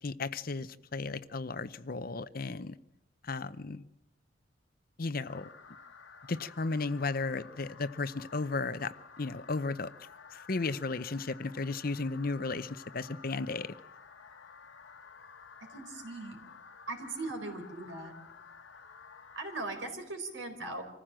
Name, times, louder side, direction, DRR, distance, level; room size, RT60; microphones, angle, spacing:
voice 1, 0.0-2.7 3.2-3.8 5.0-5.5 6.3-9.9 10.3-13.8, left 3 dB, 50° left, 0.7 m, -34 dB
sound 1, 5.2-19.7, left 5 dB, 85° left, 1.4 m, -53 dB
voice 2, 15.7-16.4 16.9-18.1 19.4-20.8, right 2 dB, 75° right, 4.1 m, -39 dB
25.5 x 15.0 x 7.6 m
head